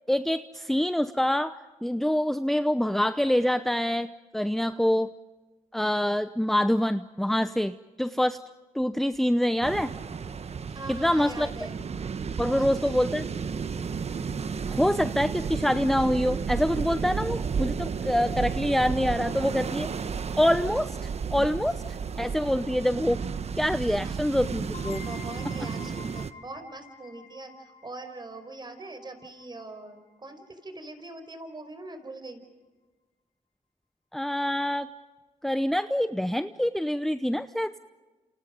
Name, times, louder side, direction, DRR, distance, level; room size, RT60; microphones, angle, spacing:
voice 1, 0.1-1.6 1.8-5.1 5.7-8.4 8.7-9.9 10.9-11.5 12.4-13.2 14.7-19.9 20.4-21.0 21.3-21.7 22.2-23.2 23.6-25.0 34.1-34.9 35.4-37.8, left 1 dB, ahead, 12 dB, 0.8 m, -25 dB
sound 1, 9.6-26.3, right 6 dB, 50° right, 1.3 m, -33 dB
voice 2, 10.7-11.9 12.4-13.2 23.9-24.1 25.0-32.4, right 2 dB, 30° right, 8 dB, 5.2 m, -42 dB
sound 2, 24.7-30.2, left 6 dB, 60° left, 7.3 m, -48 dB
28.5 x 28.0 x 5.3 m, 1.3 s
cardioid pair, 65°, 14 cm